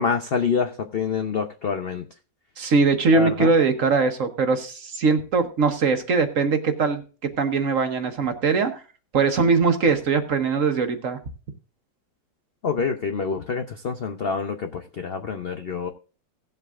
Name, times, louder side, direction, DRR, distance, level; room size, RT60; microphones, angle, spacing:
voice 1, 0.0-2.0 3.1-3.5 12.6-15.9, left 5 dB, 70° left, 6 dB, 0.5 m, -26 dB
voice 2, 2.6-7.0 7.4-8.8 9.1-11.2, right 4 dB, 50° right, 7 dB, 1.2 m, -21 dB
18.0 x 7.7 x 2.4 m, 0.36 s
omnidirectional pair, 1.9 m